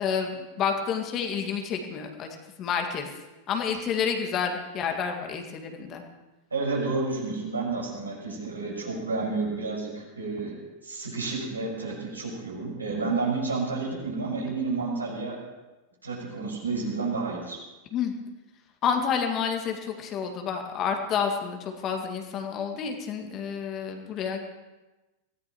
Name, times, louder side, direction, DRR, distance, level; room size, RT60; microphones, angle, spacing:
voice 1, 0.0-2.3 2.6-3.1 3.5-6.0 17.9-18.1 18.8-24.4, left 7 dB, 35° left, 4 dB, 2.0 m, -29 dB
voice 2, 6.5-10.6 10.8-15.4 16.0-17.6, right 3 dB, 75° right, -3 dB, 5.8 m, -30 dB
24.0 x 17.0 x 3.1 m, 1.1 s
figure-of-eight pair, 90°, 0 cm